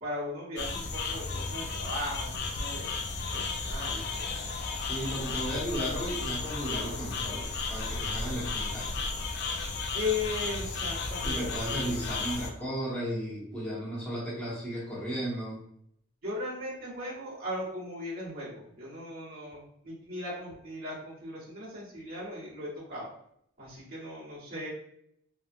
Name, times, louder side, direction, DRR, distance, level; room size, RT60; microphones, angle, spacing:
voice 1, 0.0-3.0 3.3-4.5 9.9-11.9 16.2-23.1 23.6-24.7, left 2 dB, 45° right, -9 dB, 1.4 m, -37 dB
sound 1, 0.6-12.5, left 4 dB, 50° left, 0.4 m, -34 dB
voice 2, 4.8-8.9 11.2-15.6, equal, 5° left, -8 dB, 1.1 m, -35 dB
2.9 x 2.3 x 2.5 m, 0.70 s
head